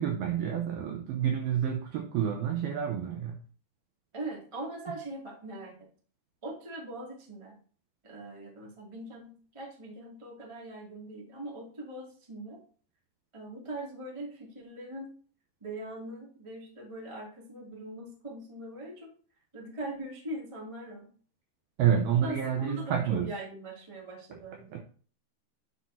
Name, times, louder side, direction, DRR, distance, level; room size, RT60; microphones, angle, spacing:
voice 1, 0.0-3.4 21.8-23.3 24.7-24.8, right 9 dB, 85° right, 3 dB, 2.2 m, -29 dB
voice 2, 4.1-5.9 6.4-7.6 8.0-12.6 13.3-15.1 15.6-19.1 19.5-21.1 22.2-24.8, right 1 dB, 30° right, -2 dB, 0.5 m, -41 dB
9.8 x 6.5 x 2.7 m, 0.42 s
omnidirectional pair, 5.5 m